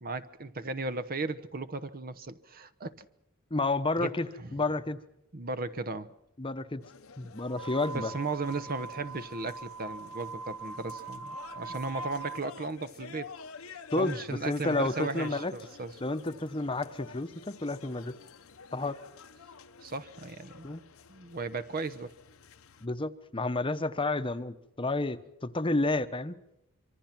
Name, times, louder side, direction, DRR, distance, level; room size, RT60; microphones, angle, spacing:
voice 1, 0.0-3.1 4.0-4.1 4.4-4.6 5.3-6.1 7.9-13.3 13.7-15.9 19.8-20.7 21.1-22.1, right 3 dB, 40° right, 0.9 m, -36 dB
voice 2, 3.5-5.0 6.4-6.8 7.2-8.1 13.9-15.5 16.0-18.2 18.7-19.0 20.6-20.8 22.8-26.3, left 2 dB, 25° left, 1.0 m, -31 dB
sound 1, 6.8-22.9, left 6 dB, 65° left, 0.9 m, -49 dB
sound 2, 7.5-12.4, right 4 dB, ahead, 1.1 m, -42 dB
25.5 x 24.5 x 6.0 m
head